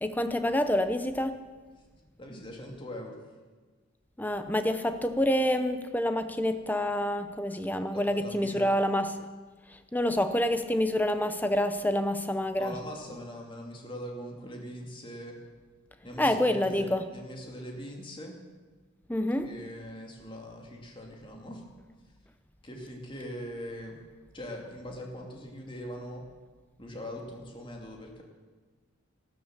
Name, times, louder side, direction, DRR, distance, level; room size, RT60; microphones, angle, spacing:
voice 1, 0.0-1.4 4.2-9.2 9.9-12.7 16.2-17.1 19.1-19.5, left 1 dB, 10° left, 9 dB, 0.8 m, -27 dB
voice 2, 2.2-3.2 7.9-8.7 12.6-15.4 16.0-18.4 19.4-21.6 22.6-24.0 24.3-26.2 26.8-28.2, equal, 25° left, 1 dB, 2.5 m, -41 dB
14.0 x 13.0 x 7.4 m, 1.3 s
head